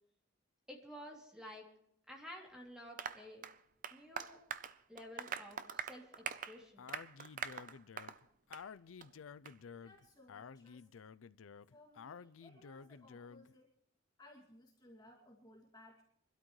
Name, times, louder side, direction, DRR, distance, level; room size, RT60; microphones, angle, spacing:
voice 1, 0.7-1.7 2.1-3.4 3.9-4.4 4.9-6.9, equal, 5° right, -1 dB, 2.9 m, -52 dB
Applause, 3.0-8.2 8.5-8.7 9.0-9.1 9.5-9.6, right 7 dB, 40° right, 0.6 m, -44 dB
Speech, 6.8-13.5, left 6 dB, 90° left, 0.5 m, -52 dB
voice 2, 9.7-11.0 11.7-13.8 14.2-16.0, left 1 dB, 20° left, -1 dB, 2.4 m, -61 dB
25.0 x 12.5 x 3.2 m, 0.73 s
head